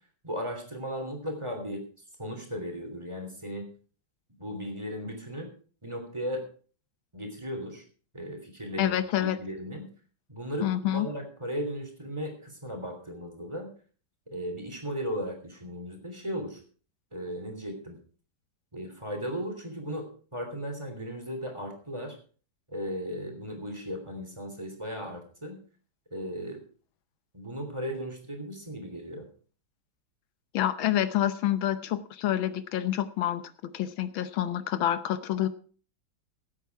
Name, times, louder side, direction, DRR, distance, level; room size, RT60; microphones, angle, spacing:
voice 1, 0.2-1.8 2.2-3.7 4.4-5.5 5.8-6.4 7.1-7.8 8.1-9.9 10.3-13.7 14.3-16.6 17.1-18.0 18.7-22.2 22.7-25.6 26.1-26.6 27.3-29.2, equal, 15° right, 3 dB, 3.3 m, -36 dB
voice 2, 8.8-9.4 10.6-11.1 30.5-33.4 33.7-35.5, left 12 dB, 85° left, 13 dB, 1.7 m, -27 dB
17.0 x 8.6 x 4.7 m, 0.41 s
omnidirectional pair, 2.1 m